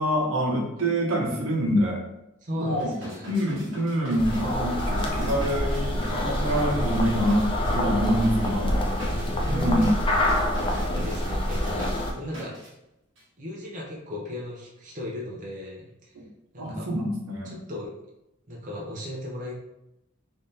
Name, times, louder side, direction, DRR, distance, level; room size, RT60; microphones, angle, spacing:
voice 1, 0.0-2.0 2.5-2.9 3.3-7.4 7.7-8.8 9.5-9.9 16.2-16.3 16.6-17.5, equal, 80° right, 0 dB, 0.8 m, -25 dB
voice 2, 2.4-3.3 9.2-9.9 10.8-12.6 13.4-16.1 16.5-16.9 17.4-17.9 18.5-19.6, left 1 dB, 35° right, -4 dB, 0.7 m, -36 dB
sound 1, 2.8-12.7 13.2-13.3, equal, 60° right, 1.3 m, -42 dB
sound 2, 4.2-12.1, left 1 dB, 25° left, 0.4 m, -26 dB
3.5 x 3.2 x 2.7 m, 0.88 s
head